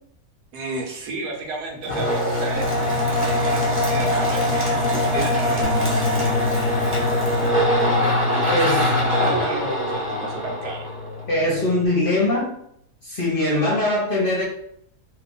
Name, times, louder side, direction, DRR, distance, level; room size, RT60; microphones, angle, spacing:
voice 1, 0.5-6.4 8.3-10.9, right 3 dB, 75° right, 1 dB, 1.3 m, -33 dB
sound 1, 1.8-11.4, left 1 dB, 15° right, 0.6 m, -22 dB
Bass guitar, 5.6-11.9, left 5 dB, 65° left, 0.9 m, -32 dB
voice 2, 8.5-8.8 11.3-12.5 13.0-14.4, left 1 dB, 40° left, -5 dB, 0.9 m, -21 dB
2.9 x 2.5 x 3.9 m, 0.70 s
omnidirectional pair, 1.7 m